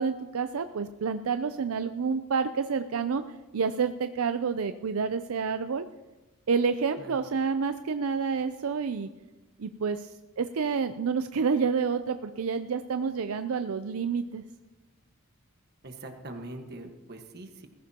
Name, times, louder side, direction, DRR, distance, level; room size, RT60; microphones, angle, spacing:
voice 1, 0.0-3.2 3.5-5.8 6.5-9.1 9.6-10.1 10.4-14.4, right 5 dB, 75° right, 9 dB, 0.5 m, -29 dB
voice 2, 15.8-17.7, right 2 dB, 50° right, 5 dB, 1.5 m, -42 dB
20.5 x 14.5 x 2.9 m, 1.1 s
head